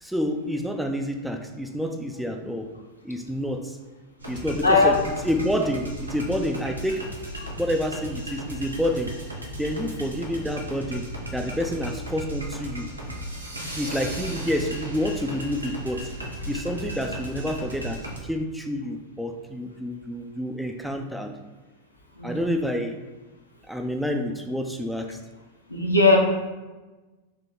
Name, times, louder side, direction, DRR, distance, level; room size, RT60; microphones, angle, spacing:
voice 1, 0.0-2.7 3.0-3.8 4.3-5.0 5.2-7.0 7.6-9.1 9.6-11.1 11.3-12.9 13.8-16.1 16.5-18.0 18.3-21.3 22.2-23.0 23.7-25.2, equal, ahead, 3 dB, 0.4 m, -28 dB
sound 1, 4.2-18.2, right 1 dB, 80° right, 0.8 m, -35 dB
voice 2, 4.6-4.9 22.2-22.4 25.7-26.2, left 3 dB, 85° left, -1 dB, 0.8 m, -18 dB
4.6 x 3.0 x 3.5 m, 1.2 s
figure-of-eight pair, 90°, 0 cm